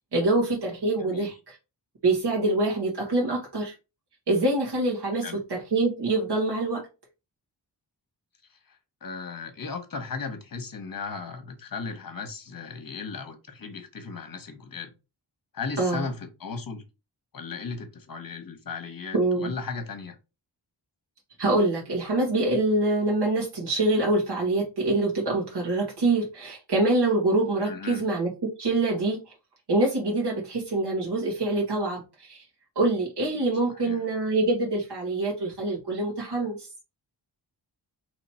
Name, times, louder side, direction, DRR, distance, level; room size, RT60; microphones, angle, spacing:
voice 1, 0.1-1.3 2.0-3.7 4.3-6.8 15.8-16.0 19.1-19.5 21.4-29.2 29.7-32.4 32.7-36.7, right 2 dB, 60° right, 1.4 m, -25 dB
voice 2, 1.0-1.3 5.2-5.4 8.5-14.9 15.5-16.8 17.3-20.2 27.6-28.0 33.7-34.0, left 5 dB, 50° left, 1.1 m, -36 dB
3.1 x 2.9 x 4.2 m
cardioid pair, 60°, 45 cm